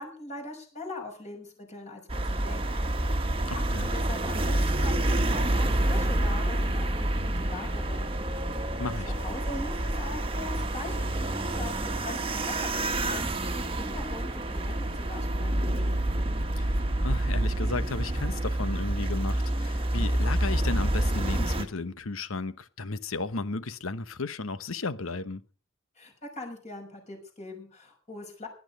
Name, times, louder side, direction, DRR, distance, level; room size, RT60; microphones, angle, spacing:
voice 1, 0.0-2.7 3.1-8.1 9.0-11.8 12.0-15.9 26.0-28.5, left 2 dB, 35° left, 6.0 m, -42 dB
sound 1, 2.1-21.7, right 1 dB, 25° right, 1.4 m, -28 dB
voice 2, 3.5-3.9 8.8-9.1 16.6-16.7 17.0-25.4, left 3 dB, 80° left, 1.0 m, -34 dB
17.5 x 10.5 x 5.3 m
head